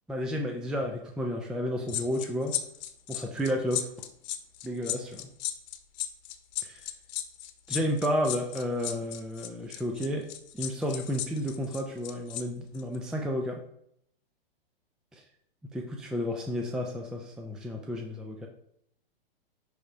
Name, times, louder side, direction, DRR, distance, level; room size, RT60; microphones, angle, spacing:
voice 1, 0.1-2.5 3.1-3.9 4.6-5.1 6.6-6.9 7.7-10.3 10.5-13.6 15.1-15.2 15.7-18.5, equal, ahead, 2 dB, 0.4 m, -31 dB
sound 1, 1.9-12.4 12.7-13.0, left 12 dB, 45° left, 1.0 m, -35 dB
10.0 x 3.5 x 4.9 m, 0.73 s
hypercardioid pair, 120°, 29 cm